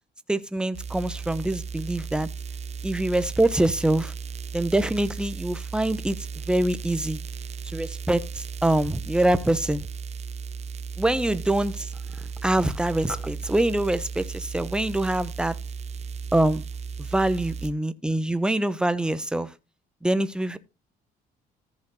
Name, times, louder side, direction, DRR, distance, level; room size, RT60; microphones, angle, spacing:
voice 1, 0.3-2.3 2.8-4.1 4.5-6.2 6.5-7.2 7.6-9.9 11.0-11.9 12.4-15.6 16.3-16.6 17.0-19.5 20.0-20.6, right 1 dB, 5° right, 0.9 m, -24 dB
sound 1, 0.7-17.7, right 5 dB, 40° right, 0.7 m, -35 dB
14.0 x 5.2 x 4.0 m
cardioid pair, 110°, 17 cm